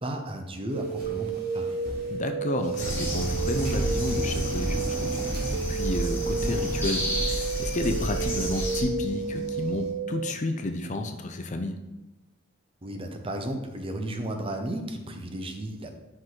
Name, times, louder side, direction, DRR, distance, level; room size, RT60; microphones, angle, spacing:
voice 1, 0.0-1.8 12.8-16.0, right 1 dB, 30° right, 5 dB, 0.7 m, -34 dB
sound 1, 0.7-2.2 2.6-5.7 6.1-9.9, right 1 dB, 55° right, 2.2 m, -39 dB
sound 2, 0.8-10.3, right 5 dB, 85° right, 0.4 m, -32 dB
voice 2, 2.1-5.2 5.7-11.7, left 2 dB, 40° left, 6 dB, 0.5 m, -31 dB
sound 3, 2.8-8.8, equal, 10° left, 1.4 m, -30 dB
5.9 x 5.3 x 3.8 m, 0.98 s
head